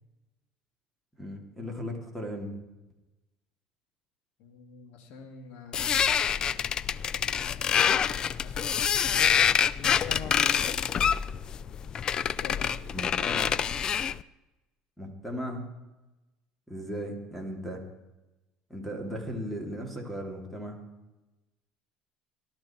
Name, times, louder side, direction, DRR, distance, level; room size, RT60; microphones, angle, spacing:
voice 1, 1.2-2.5 12.9-13.5 15.0-15.7 16.7-17.8 18.7-20.8, equal, 5° left, 3 dB, 3.0 m, -37 dB
voice 2, 4.4-6.8 7.4-7.9 8.4-9.3 9.7-10.8 12.2-12.8, left 5 dB, 70° left, 5 dB, 2.8 m, -45 dB
sound 1, 5.7-14.2, left 8 dB, 35° left, 0.4 m, -26 dB
18.5 x 12.5 x 4.5 m, 1.0 s
cardioid pair, 130°, 2 cm